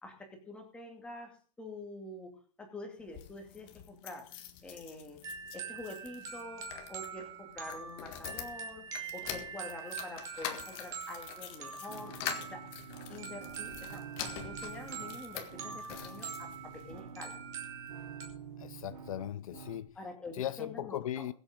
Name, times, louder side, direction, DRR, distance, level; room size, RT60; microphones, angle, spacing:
voice 1, 0.0-5.2 5.5-8.8 9.1-12.1 12.4-12.6 13.1-14.0 14.4-17.4 20.0-21.3, left 2 dB, 5° left, 2.4 m, -46 dB
sound 1, 3.0-17.0 17.6-18.5 18.8-18.9 19.1-19.2, left 10 dB, 25° left, 1.6 m, -46 dB
sound 2, 5.2-18.3, right 6 dB, 15° right, 2.3 m, -44 dB
sound 3, 11.9-19.9, right 6 dB, 90° right, 3.4 m, -48 dB
voice 2, 18.6-20.0 20.3-21.3, left 12 dB, 55° left, 0.5 m, -38 dB
22.5 x 8.1 x 3.7 m
supercardioid pair, 175°, 21 cm